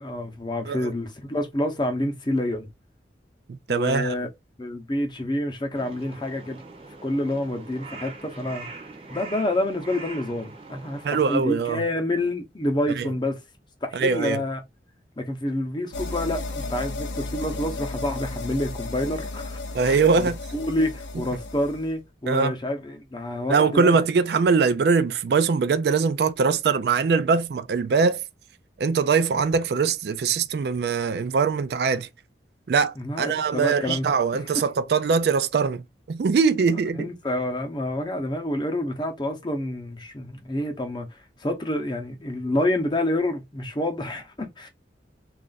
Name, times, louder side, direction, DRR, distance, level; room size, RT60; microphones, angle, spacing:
voice 1, 0.0-2.7 3.7-4.3 4.6-6.6 7.0-8.7 9.1-13.4 13.8-14.6 15.2-24.0 33.0-34.1 37.0-44.7, left 1 dB, 25° left, 0.7 m, -28 dB
voice 2, 3.5-4.1 11.0-11.8 13.0-13.1 13.9-14.4 19.7-20.4 22.3-22.5 23.5-28.2 28.8-32.1 32.7-37.1, right 5 dB, 60° right, 0.3 m, -22 dB
Crow, 5.7-11.3, right 3 dB, 30° right, 0.7 m, -42 dB
sound 1, 15.9-22.0, left 2 dB, 80° left, 0.6 m, -34 dB
3.2 x 2.4 x 3.9 m
head